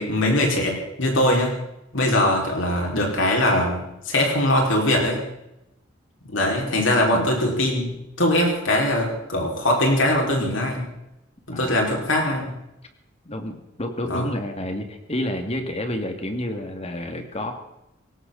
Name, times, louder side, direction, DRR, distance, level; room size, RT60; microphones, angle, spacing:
voice 1, 0.0-1.6 1.9-5.2 6.3-10.8 11.5-12.5 14.1-14.3, left 1 dB, 75° left, 0 dB, 5.3 m, -21 dB
voice 2, 13.2-17.5, left 1 dB, 35° left, 5 dB, 2.4 m, -29 dB
19.5 x 17.5 x 4.1 m, 0.87 s
head